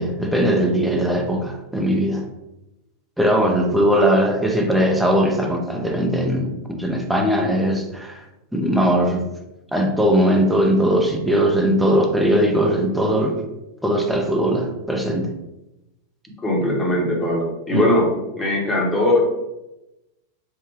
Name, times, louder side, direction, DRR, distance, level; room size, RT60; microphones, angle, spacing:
voice 1, 0.0-2.3 3.2-8.2 8.5-9.2 9.7-13.4 13.8-15.3 17.7-17.9, equal, 5° right, 2 dB, 0.5 m, -19 dB
voice 2, 16.4-18.1 18.4-19.2, left 1 dB, 15° left, -2 dB, 0.9 m, -20 dB
3.5 x 2.1 x 3.2 m, 0.95 s
figure-of-eight pair, 90°, 0 cm